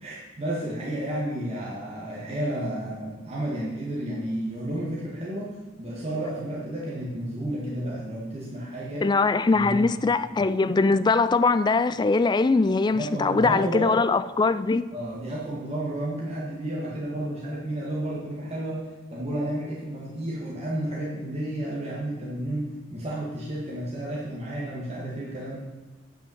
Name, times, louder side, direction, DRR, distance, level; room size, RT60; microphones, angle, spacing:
voice 1, 0.0-9.1 9.5-10.4 12.9-14.0 14.9-25.6, right 1 dB, 35° right, 1.8 m, -32 dB
voice 2, 9.0-14.8, left 3 dB, 25° left, 0.3 m, -22 dB
9.0 x 5.6 x 7.2 m
head